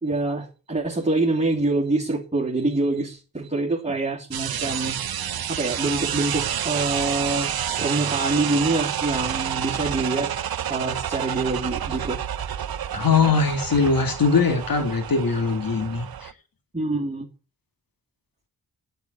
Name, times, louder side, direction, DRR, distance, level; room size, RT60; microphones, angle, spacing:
voice 1, 0.0-5.0 5.5-7.5 7.8-10.3 10.7-12.2 16.7-17.3, right 2 dB, 20° right, 3.2 m, -25 dB
sound 1, 4.3-16.3, right 10 dB, 75° right, 0.7 m, -29 dB
voice 2, 12.9-16.3, left 4 dB, 65° left, 2.1 m, -21 dB
8.6 x 7.9 x 9.1 m
cardioid pair, 70°, 37 cm